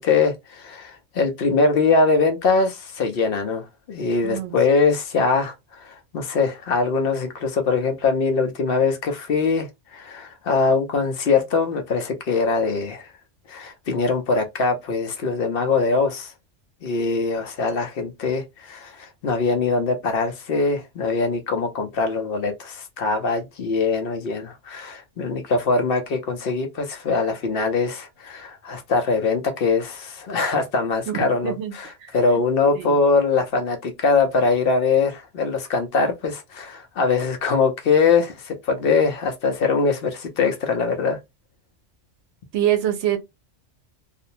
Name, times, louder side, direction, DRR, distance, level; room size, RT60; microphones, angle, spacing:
voice 1, 0.0-5.5 5.8-13.0 13.5-16.3 16.8-41.2, left 4 dB, 60° left, 0.7 m, -22 dB
voice 2, 4.2-4.5 31.1-31.7 32.0-32.1 32.7-33.0 42.5-43.2, right 11 dB, 80° right, 0.9 m, -24 dB
2.5 x 2.0 x 2.7 m
omnidirectional pair, 1.2 m